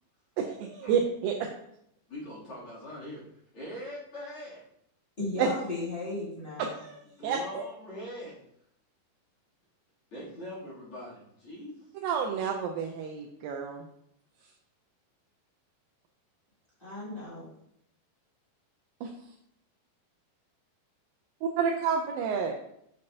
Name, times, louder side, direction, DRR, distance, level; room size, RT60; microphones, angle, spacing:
voice 1, 0.4-1.3 5.4-5.5 6.6-7.6 12.0-13.9 19.0-19.1 21.4-22.6, right 6 dB, 80° right, 2 dB, 2.2 m, -30 dB
voice 2, 2.1-3.2 3.5-4.6 7.2-8.3 10.1-11.8, equal, 40° left, -8 dB, 3.2 m, -42 dB
voice 3, 5.2-6.8 16.8-17.5, left 2 dB, 20° left, -8 dB, 2.0 m, -35 dB
6.8 x 6.5 x 2.7 m, 0.75 s
omnidirectional pair, 4.2 m